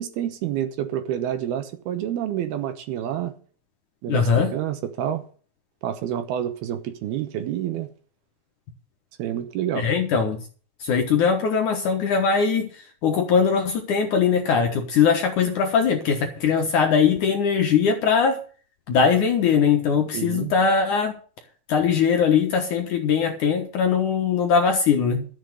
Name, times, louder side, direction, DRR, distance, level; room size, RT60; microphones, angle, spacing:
voice 1, 0.0-3.3 4.0-5.2 5.8-7.9 9.2-9.9 20.1-20.5, right 10 dB, 70° right, 2.7 m, -28 dB
voice 2, 4.1-4.5 9.8-10.4 10.8-18.4 18.9-21.1 21.7-25.3, left 6 dB, 65° left, 2.1 m, -21 dB
13.0 x 7.2 x 7.7 m
omnidirectional pair, 4.9 m